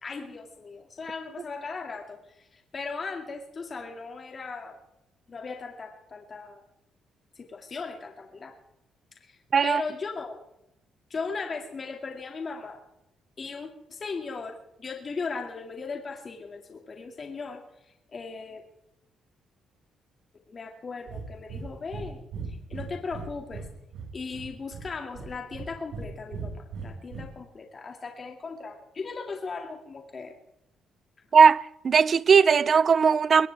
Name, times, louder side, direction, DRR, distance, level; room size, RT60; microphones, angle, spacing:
voice 1, 0.0-4.8 5.3-6.6 7.4-8.5 9.2-10.4 11.1-12.8 13.4-17.6 18.1-18.6 20.5-22.2 22.7-23.7 24.1-30.3, left 4 dB, 40° left, 2.3 m, -37 dB
Breathing, 21.1-21.2 21.5-21.7 21.9-22.1 22.3-23.7 23.9-24.9 25.1-26.1 26.3-27.2, right 5 dB, 75° right, 5.2 m, -37 dB
voice 2, 31.3-33.5, right 6 dB, 45° right, 0.6 m, -18 dB
22.5 x 17.5 x 3.5 m
cardioid pair, 90°, 0 cm